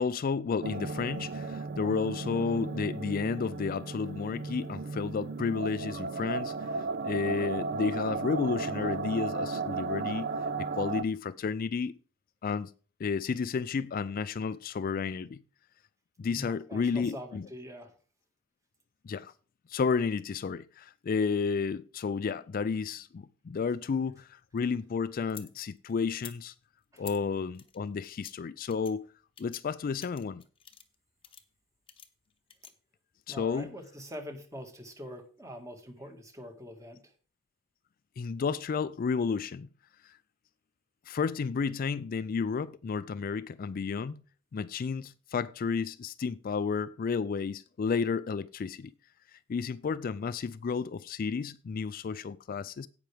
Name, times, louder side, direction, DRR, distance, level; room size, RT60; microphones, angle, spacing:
voice 1, 0.0-10.3 10.6-11.9 12.4-12.7 13.0-15.4 16.2-17.4 19.0-19.3 19.7-26.5 27.0-29.0 29.4-30.4 33.3-33.7 38.2-39.7 40.0-40.1 41.1-44.2 44.5-48.9 49.5-52.9, left 5 dB, 45° left, 0.3 m, -32 dB
sound 1, 0.6-11.0, right 4 dB, 50° right, 0.5 m, -35 dB
voice 2, 16.3-17.9 26.9-27.0 32.6-32.7 33.3-37.1, equal, 15° right, 1.7 m, -44 dB
sound 2, 24.3-25.5 26.1-26.4 27.0-27.2 27.5-28.3 28.7-28.9 29.4-29.6 30.0-31.0 31.2-31.4 31.9-32.7, left 8 dB, 25° left, 1.0 m, -49 dB
16.5 x 5.9 x 3.4 m
head